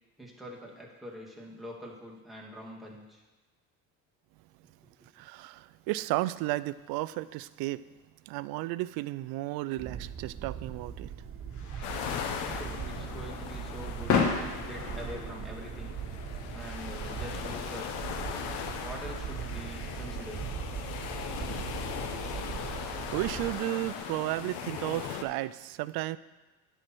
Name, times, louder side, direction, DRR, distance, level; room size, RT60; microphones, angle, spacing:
voice 1, 0.2-3.2 12.4-14.2 14.5-16.0 16.5-18.2 18.8-20.5, equal, ahead, -2 dB, 2.1 m, -44 dB
voice 2, 5.2-7.8 8.3-11.1 22.6-26.2, right 17 dB, 65° right, 17 dB, 0.5 m, -33 dB
sound 1, 9.8-23.6, right 8 dB, 35° right, 1.0 m, -40 dB
sound 2, 10.2-21.5, left 5 dB, 50° left, 1.7 m, -37 dB
sound 3, 11.8-25.2, left 8 dB, 75° left, 1.0 m, -39 dB
9.9 x 4.5 x 6.1 m, 1.2 s
supercardioid pair, 90°, 39 cm